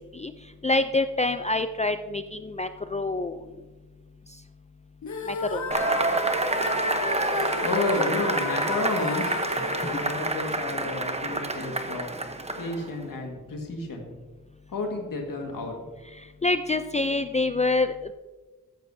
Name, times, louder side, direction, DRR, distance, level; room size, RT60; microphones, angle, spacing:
voice 1, 0.6-3.4 5.3-5.7 16.4-18.1, left 2 dB, 20° left, 9 dB, 0.4 m, -26 dB
sound 1, 5.0-11.2, left 4 dB, 60° left, 0.8 m, -34 dB
Cheering / Applause / Crowd, 5.7-12.9, right 2 dB, 20° right, 0.9 m, -28 dB
voice 2, 7.6-9.4 9.8-12.1 12.6-14.1 14.7-15.8, left 3 dB, 85° left, 2 dB, 1.8 m, -31 dB
14.0 x 7.5 x 2.7 m, 1.3 s
wide cardioid pair, 75°, 32 cm